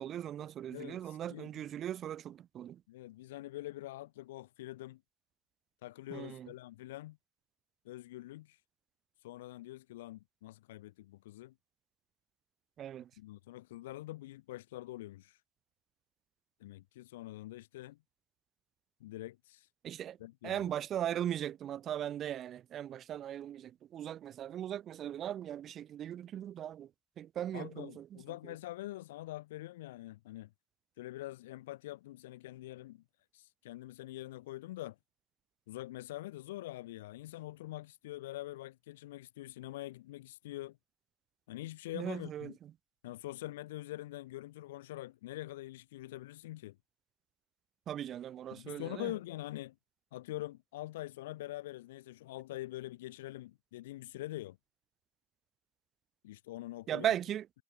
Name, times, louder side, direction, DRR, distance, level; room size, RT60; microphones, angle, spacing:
voice 1, 0.0-2.8 6.1-6.5 12.8-13.1 19.8-20.2 20.4-26.9 27.2-28.2 28.4-28.5 41.9-42.7 47.9-49.1 56.9-57.5, right 10 dB, 40° right, 0.3 m, -38 dB
voice 2, 0.7-1.5 2.9-5.0 5.8-7.2 7.8-8.6 9.2-11.5 13.2-15.4 16.6-18.0 19.0-19.7 20.2-20.7 27.5-30.5 31.0-33.0 33.3-35.0 35.7-40.8 41.5-42.5 43.0-46.8 48.5-49.7 50.1-54.6 56.2-57.1, left 16 dB, 90° left, 0.8 m, -45 dB
supercardioid pair, 110°, 0 cm